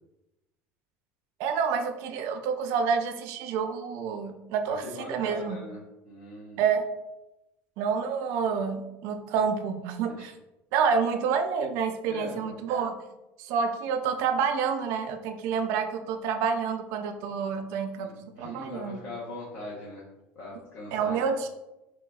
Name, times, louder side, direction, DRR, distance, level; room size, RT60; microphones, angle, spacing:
voice 1, 1.4-5.6 6.6-6.9 7.8-10.3 10.7-13.0 13.4-19.0 20.9-21.5, right 6 dB, 60° right, 7 dB, 0.4 m, -28 dB
voice 2, 4.7-6.6 10.0-10.3 12.1-12.5 17.9-20.1 20.3-21.2, left 2 dB, 60° left, -7 dB, 0.8 m, -41 dB
3.9 x 3.0 x 2.3 m, 0.98 s
cardioid pair, 165°, 5 cm